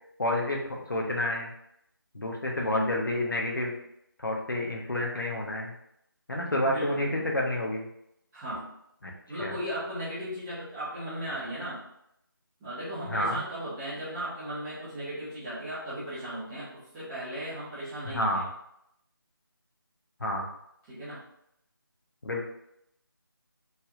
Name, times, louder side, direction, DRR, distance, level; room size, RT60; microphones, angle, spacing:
voice 1, 0.2-1.5 2.1-3.7 4.2-5.7 6.3-7.9 9.0-9.1 9.4-9.5 13.1-13.4 18.0-18.5 20.2-20.5 22.2-22.5, left 1 dB, 60° left, 0 dB, 0.9 m, -29 dB
voice 2, 2.6-2.9 6.6-7.3 8.3-8.7 9.3-11.8 12.6-18.4 20.9-21.2, right 1 dB, 10° right, -12 dB, 0.8 m, -36 dB
4.3 x 3.3 x 2.5 m, 0.77 s
figure-of-eight pair, 160°, 12 cm